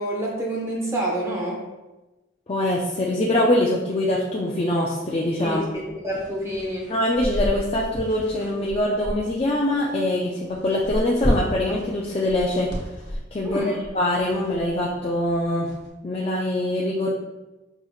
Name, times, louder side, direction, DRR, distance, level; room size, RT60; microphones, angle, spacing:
voice 1, 0.0-1.6 5.4-5.6 6.0-6.9 13.4-13.8, right 1 dB, 15° right, -2 dB, 0.7 m, -27 dB
voice 2, 2.5-5.6 6.9-12.7 13.3-15.7 16.0-17.1, left 1 dB, 30° left, -3 dB, 0.4 m, -23 dB
sound 1, 5.5-15.9, equal, 55° left, 0.9 m, -33 dB
5.5 x 3.1 x 2.3 m, 1.1 s
head